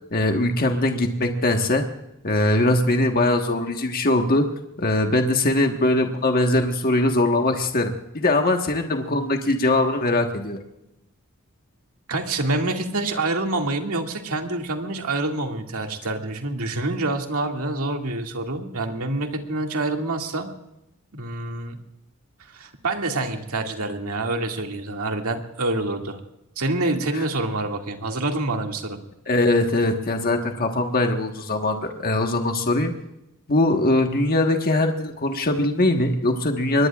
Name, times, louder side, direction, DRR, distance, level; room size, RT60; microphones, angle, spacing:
voice 1, 0.1-1.8 2.2-4.5 4.8-10.6 27.1-27.2 29.3-32.9 33.5-36.9, left 2 dB, 40° left, 4 dB, 1.5 m, -21 dB
voice 2, 12.1-20.5 21.1-21.8 22.5-26.2 26.6-29.0, right 2 dB, 70° right, 2 dB, 2.3 m, -26 dB
24.0 x 21.0 x 2.5 m, 0.86 s
head